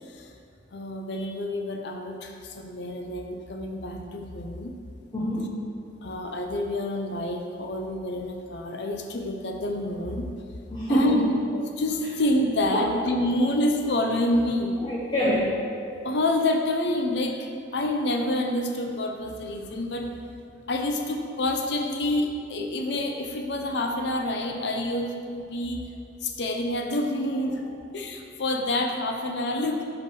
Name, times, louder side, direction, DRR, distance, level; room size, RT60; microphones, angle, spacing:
voice 1, 0.7-4.7 6.0-10.3 10.9-11.2 11.8-14.8 16.0-17.4 17.7-20.1 20.7-25.8 26.2-27.6 27.9-29.8, left 1 dB, 65° left, 3 dB, 0.6 m, -27 dB
voice 2, 5.1-5.5 10.7-11.4 12.7-12.9 14.8-15.5 27.7-27.8, equal, 25° left, -7 dB, 0.9 m, -25 dB
5.6 x 5.1 x 6.2 m, 2.4 s
head